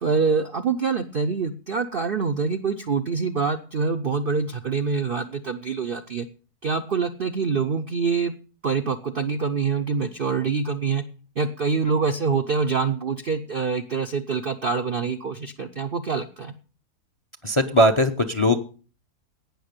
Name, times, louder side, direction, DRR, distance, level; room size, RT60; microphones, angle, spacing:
voice 1, 0.0-6.3 6.6-8.3 8.6-11.0 11.4-16.5, right 5 dB, 55° right, 7 dB, 0.6 m, -25 dB
voice 2, 17.4-18.6, equal, 30° left, 11 dB, 0.6 m, -19 dB
17.5 x 6.2 x 6.6 m, 0.39 s
omnidirectional pair, 1.7 m